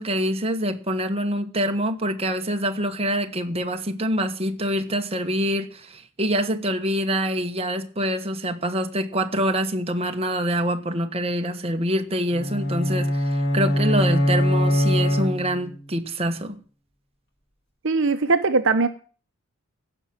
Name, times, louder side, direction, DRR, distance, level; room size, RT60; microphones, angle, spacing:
voice 1, 0.0-16.6, equal, 25° right, 1.3 m, -25 dB
sound 1, 12.3-15.8, equal, 50° left, 4.1 m, -22 dB
voice 2, 17.8-18.9, right 3 dB, 60° right, 0.9 m, -20 dB
15.5 x 6.0 x 8.8 m
head